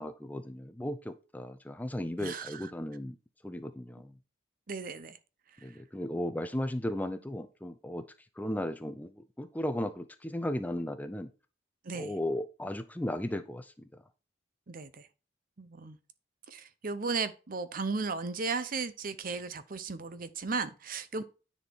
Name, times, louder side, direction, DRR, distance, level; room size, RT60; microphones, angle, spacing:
voice 1, 0.0-3.2 3.4-4.1 5.6-8.1 8.4-11.3 11.9-13.7, left 1 dB, 10° left, 0.5 m, -35 dB
voice 2, 2.2-2.6 4.7-5.2 11.8-12.1 14.7-15.1 15.6-16.0 16.5-21.2, right 4 dB, 50° right, 0.7 m, -35 dB
9.8 x 4.3 x 4.6 m
head